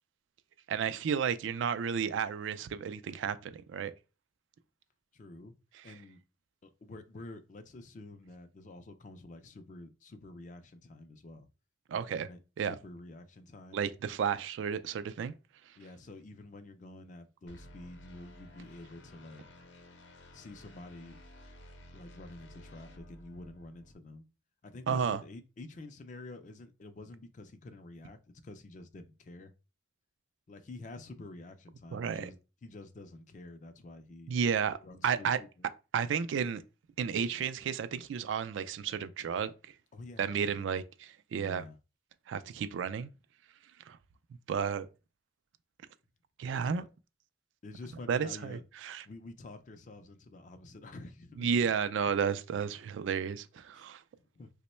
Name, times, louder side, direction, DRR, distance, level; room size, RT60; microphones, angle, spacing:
voice 1, 0.7-3.9 5.7-5.9 11.9-12.3 12.6-12.8 13.7-15.3 24.9-25.2 31.9-32.3 34.3-34.8 35.0-35.4 35.9-36.6 37.0-39.5 40.2-41.6 42.3-43.1 43.9-44.0 44.5-44.9 46.4-46.9 48.1-49.0 51.4-54.0, right 7 dB, 80° right, 0.3 m, -32 dB
voice 2, 5.1-5.5 5.8-6.2 6.6-11.5 12.3-13.9 15.8-19.5 20.3-21.2 21.9-24.3 24.6-29.5 30.5-34.3 34.8-35.5 39.9-40.8 41.3-41.8 46.6-46.8 47.6-48.6 49.0-51.5 53.7-53.9 54.1-54.5, left 2 dB, 40° left, 0.4 m, -49 dB
sound 1, 17.5-23.9, equal, 70° left, 0.7 m, -54 dB
3.0 x 2.1 x 4.1 m
head